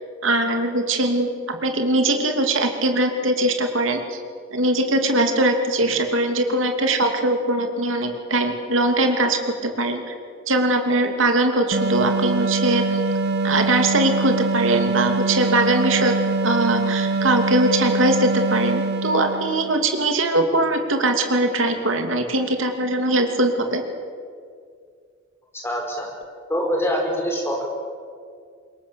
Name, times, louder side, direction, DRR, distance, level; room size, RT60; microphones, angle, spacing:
voice 1, 0.2-4.2 4.5-10.1 10.5-13.0 13.4-16.1 16.4-23.8, right 1 dB, 85° right, 4 dB, 2.8 m, -21 dB
sound 1, 11.7-19.8, right 3 dB, 55° right, 1.0 m, -24 dB
voice 2, 25.6-26.1 26.5-27.6, equal, 15° left, 0 dB, 5.3 m, -24 dB
26.0 x 22.5 x 7.1 m, 2.2 s
head